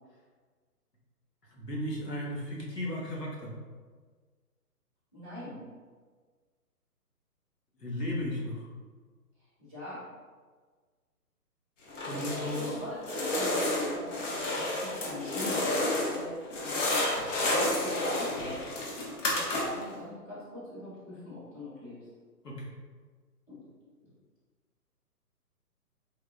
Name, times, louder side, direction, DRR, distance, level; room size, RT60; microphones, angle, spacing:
voice 1, 1.5-3.6 7.8-8.7 12.0-12.8 22.4-22.8, left 1 dB, 90° left, -4 dB, 1.0 m, -35 dB
voice 2, 5.1-5.6 9.6-10.1 12.1-17.1 17.4-18.6 19.3-22.0 23.5-23.7 24.0-24.1, left 1 dB, 5° left, -18 dB, 0.6 m, -42 dB
sound 1, 11.9-12.8 13.0-16.2 16.5-19.9, left 1 dB, 50° left, 0.7 m, -30 dB
3.6 x 2.2 x 2.2 m, 1.5 s
figure-of-eight pair, 140°, 47 cm